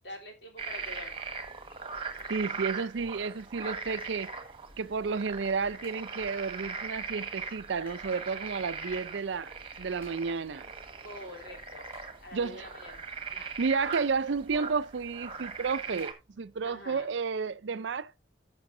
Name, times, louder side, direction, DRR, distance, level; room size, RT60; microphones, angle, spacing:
voice 1, 0.0-1.3 11.0-11.9 12.1-13.1 13.3-13.6 16.6-17.1, left 1 dB, 60° left, 3.3 m, -46 dB
sound 1, 0.6-16.1, right 4 dB, 30° right, 1.5 m, -40 dB
voice 2, 2.3-4.3 4.8-10.7 12.3-12.7 13.3-18.1, right 5 dB, 70° right, 0.5 m, -32 dB
sound 2, 3.5-17.0, equal, 10° left, 6.9 m, -65 dB
14.5 x 6.2 x 2.6 m
head